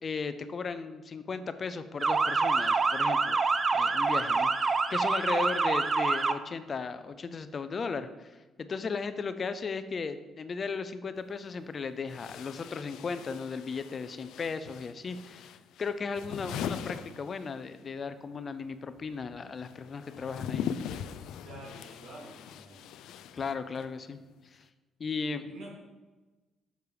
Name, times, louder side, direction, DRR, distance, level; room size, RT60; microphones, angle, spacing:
voice 1, 0.0-3.4 3.7-20.7 23.3-24.2 24.5-24.6 25.0-25.4, left 5 dB, 40° left, 11 dB, 0.6 m, -36 dB
Motor vehicle (road) / Siren, 2.0-6.3, right 4 dB, 30° right, 0.5 m, -26 dB
sound 1, 11.2-11.3 12.1-17.9 18.1-24.0, left 8 dB, 80° left, 0.4 m, -41 dB
voice 2, 21.4-22.8 25.1-25.7, right 1 dB, 70° right, -3 dB, 3.1 m, -47 dB
8.5 x 6.7 x 4.9 m, 1.2 s
cardioid pair, 100°, 0 cm